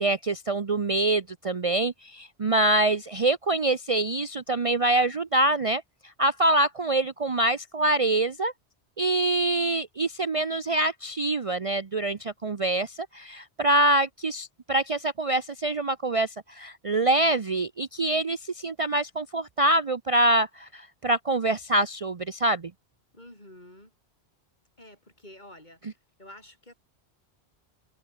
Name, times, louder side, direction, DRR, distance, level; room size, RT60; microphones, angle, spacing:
voice 1, 0.0-5.8 6.2-8.5 9.0-22.7, right 2 dB, 35° right, 0.8 m, -25 dB
voice 2, 23.1-23.9 24.8-25.8 26.2-26.7, left 1 dB, 45° left, 8.0 m, -49 dB
omnidirectional pair, 1.1 m